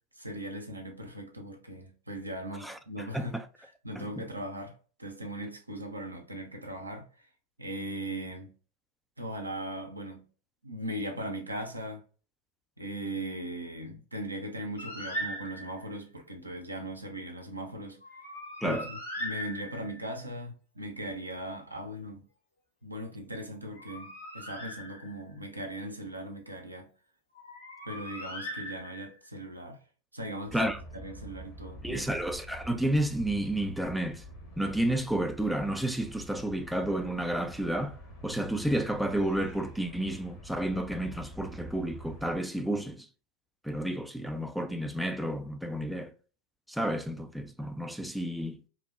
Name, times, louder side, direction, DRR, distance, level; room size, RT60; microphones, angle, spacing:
voice 1, 0.2-7.3 7.6-8.6 9.2-10.3 10.6-12.0 12.8-18.0 18.6-22.3 22.8-26.9 27.8-29.8 30.1-32.1, right 1 dB, 85° right, 0.6 m, -39 dB
voice 2, 2.6-3.4 4.0-4.1 18.6-18.9 30.5-30.8 31.8-34.2 34.6-38.0 38.2-43.1 43.6-46.1 46.7-48.7, right 1 dB, ahead, 0.3 m, -31 dB
Bird, 14.8-15.9 18.0-20.1 23.5-25.4 27.4-29.3, equal, 80° left, 0.9 m, -40 dB
sound 1, 30.5-42.4, right 1 dB, 30° left, 1.0 m, -47 dB
3.0 x 2.1 x 2.5 m
figure-of-eight pair, 90°, 0 cm